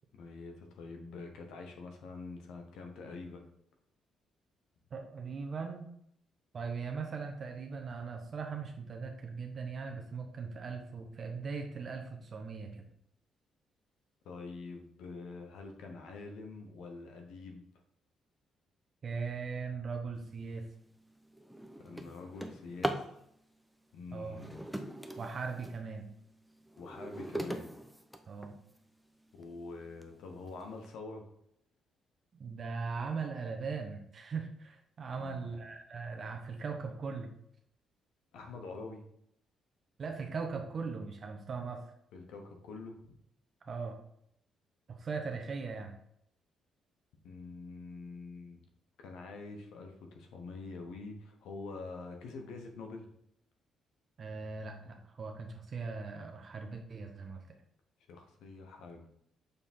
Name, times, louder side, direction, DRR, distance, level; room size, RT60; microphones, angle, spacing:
voice 1, 0.1-3.4 14.2-17.6 21.8-23.2 23.9-24.6 26.8-27.7 29.3-31.2 35.1-35.6 38.3-39.0 42.1-43.1 47.2-48.6 49.0-53.1 58.1-59.1, left 3 dB, 85° left, 3 dB, 1.0 m, -46 dB
voice 2, 4.9-5.9 6.5-12.8 19.0-20.6 24.1-24.4 25.2-26.1 28.3-28.5 32.3-37.3 40.0-41.9 43.6-44.0 44.9-45.9 54.2-57.6, right 5 dB, 50° right, 3 dB, 0.9 m, -39 dB
Drawer open or close, 20.5-20.7 21.2-23.1 24.2-25.8 26.3-28.8 29.4-29.5 30.0-30.1 30.5-30.9, right 1 dB, ahead, 0.7 m, -40 dB
6.7 x 3.5 x 4.3 m, 0.72 s
cardioid pair, 90°, 0 cm